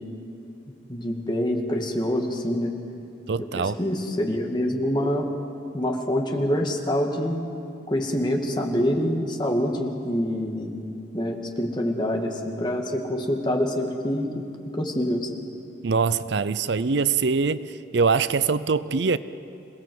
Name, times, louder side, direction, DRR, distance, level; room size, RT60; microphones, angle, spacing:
voice 1, 0.9-2.7 3.8-5.3 5.7-7.5 7.9-10.7 11.1-14.4 14.7-15.3, equal, 25° left, 1.9 m, -26 dB
voice 2, 3.3-3.8 15.8-19.2, right 5 dB, 65° right, 0.6 m, -23 dB
27.0 x 18.0 x 7.8 m
head